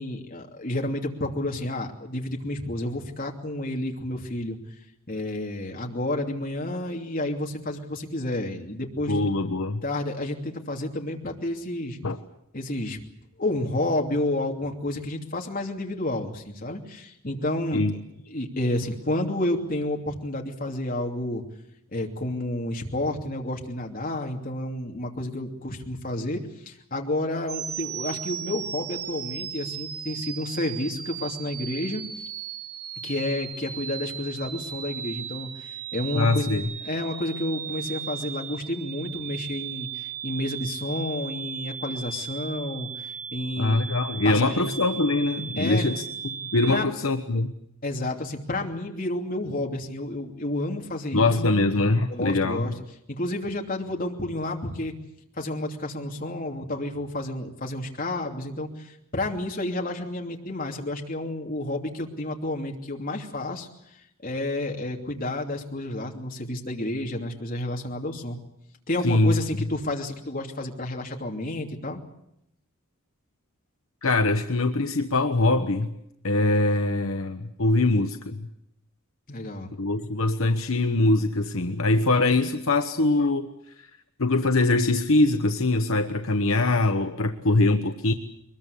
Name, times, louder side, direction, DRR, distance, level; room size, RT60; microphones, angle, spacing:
voice 1, 0.0-4.6 5.1-9.2 9.8-12.0 12.5-13.0 13.4-17.8 18.3-21.4 21.9-26.4 26.7-32.0 33.0-36.5 36.8-43.8 44.2-44.7 45.6-45.9 46.7-46.9 47.8-51.3 52.1-52.7 53.1-54.9 55.4-63.7 64.2-68.4 68.9-72.0 79.3-79.7, left 1 dB, 40° left, 1 dB, 2.9 m, -30 dB
voice 2, 9.1-9.8 12.0-12.2 17.7-17.9 36.1-36.6 43.6-46.0 46.5-47.5 51.1-52.8 69.0-69.4 74.0-75.9 76.2-78.5 79.8-83.5 83.8-83.9 84.2-88.1, left 2 dB, 70° left, 6 dB, 1.1 m, -23 dB
sound 1, 27.5-46.8, right 9 dB, 80° right, 1.3 m, -36 dB
23.0 x 21.5 x 8.4 m, 0.79 s
head